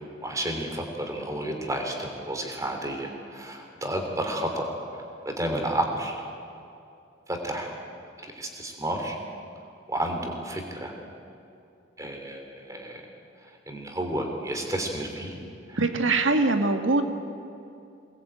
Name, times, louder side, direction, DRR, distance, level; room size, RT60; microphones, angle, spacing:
voice 1, 0.2-4.6 4.9-6.2 7.3-7.7 8.2-9.2 9.9-10.9 12.0-13.0 13.7-15.4 15.7-15.9, right 1 dB, 15° right, 3 dB, 3.2 m, -31 dB
voice 2, 15.8-17.0, right 3 dB, 80° right, 6 dB, 1.8 m, -22 dB
23.5 x 19.5 x 8.9 m, 2.6 s
head